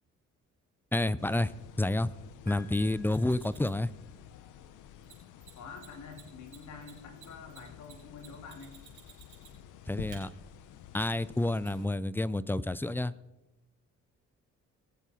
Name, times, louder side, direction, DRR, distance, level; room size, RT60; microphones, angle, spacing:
voice 1, 0.9-1.5 1.8-2.1 2.5-3.9 9.9-10.3 10.9-13.1, left 1 dB, 5° left, 18 dB, 0.4 m, -29 dB
sound 1, 1.2-11.9, left 10 dB, 85° left, 0.8 m, -51 dB
Piano, 2.5-4.2, left 2 dB, 10° right, 2.1 m, -55 dB
Mechanisms, 3.1-3.8 5.0-5.1 5.4-5.5 5.8-5.9 6.1-9.7 10.1-10.2 11.6-11.7, right 9 dB, 75° right, 4.0 m, -54 dB
voice 2, 5.6-8.8, left 5 dB, 70° left, 2 dB, 2.5 m, -47 dB
18.5 x 7.3 x 4.2 m, 0.99 s
cardioid pair, 90°, 30 cm